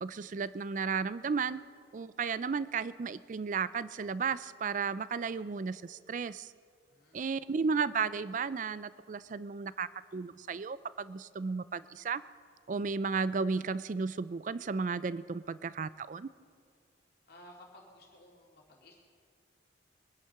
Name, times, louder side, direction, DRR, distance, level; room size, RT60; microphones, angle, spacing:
voice 1, 0.0-1.6 1.9-6.5 7.1-12.2 12.7-16.3, right 5 dB, 40° right, 17 dB, 0.4 m, -34 dB
voice 2, 6.8-7.7 17.3-19.0, left 1 dB, 55° left, -2 dB, 2.5 m, -57 dB
23.5 x 10.0 x 5.7 m, 2.2 s
head